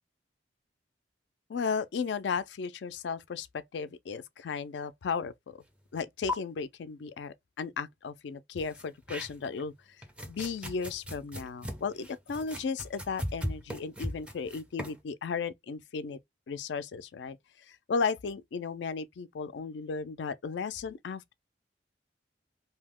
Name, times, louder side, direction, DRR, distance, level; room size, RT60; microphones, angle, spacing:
voice 1, 1.5-3.5 3.7-5.6 5.9-9.7 10.3-16.2 16.5-17.4 17.7-21.3, left 5 dB, 70° left, 0.4 m, -35 dB
sound 1, 6.0-6.1 6.3-6.4 8.6-9.6 10.0-15.0, left 1 dB, 5° right, 0.4 m, -38 dB
2.7 x 2.0 x 3.5 m
head